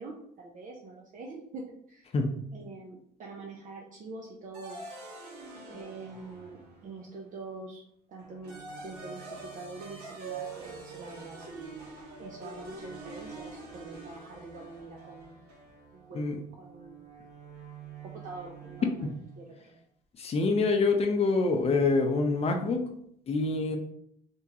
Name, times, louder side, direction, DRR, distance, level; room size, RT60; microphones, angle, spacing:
voice 1, 0.0-2.1 2.5-4.9 5.7-7.8 8.1-11.7 12.2-15.4 15.9-17.0 18.0-19.8, right 3 dB, 50° right, 0 dB, 0.6 m, -45 dB
sound 1, 4.5-7.1 8.2-19.3, right 4 dB, 75° right, 1.3 m, -46 dB
voice 2, 20.2-22.8 23.3-23.8, left 3 dB, 40° left, 4 dB, 0.6 m, -26 dB
3.5 x 2.9 x 2.9 m, 0.70 s
cardioid pair, 110°, 17 cm